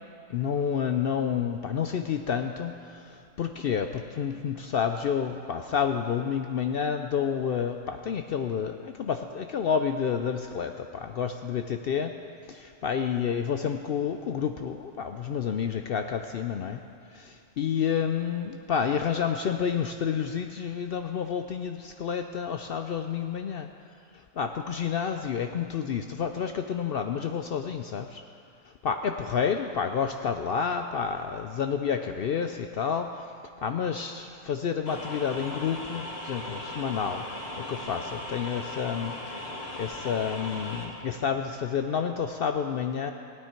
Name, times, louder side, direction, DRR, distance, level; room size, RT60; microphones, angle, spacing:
voice 1, 0.3-12.1 12.5-16.8 17.1-23.7 24.4-28.2 28.8-33.2 33.6-39.5 39.8-43.1, left 7 dB, 65° left, 6 dB, 0.6 m, -29 dB
sound 1, 34.9-40.9, left 1 dB, 35° left, 1.4 m, -38 dB
17.0 x 9.3 x 4.4 m, 2.5 s
omnidirectional pair, 1.4 m